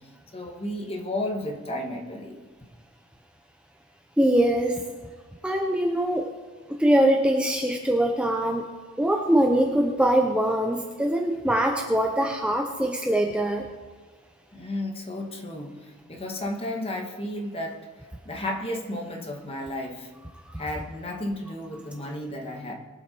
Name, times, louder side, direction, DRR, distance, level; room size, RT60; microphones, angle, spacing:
voice 1, 0.0-2.4 14.5-17.8 18.2-20.1 20.6-22.7, left 1 dB, 25° left, 2 dB, 1.7 m, -33 dB
voice 2, 4.2-4.8 5.4-6.3 6.7-8.6 9.0-13.7 20.3-20.6, right 1 dB, 5° right, 2 dB, 0.7 m, -23 dB
22.0 x 7.8 x 4.5 m, 1.4 s
head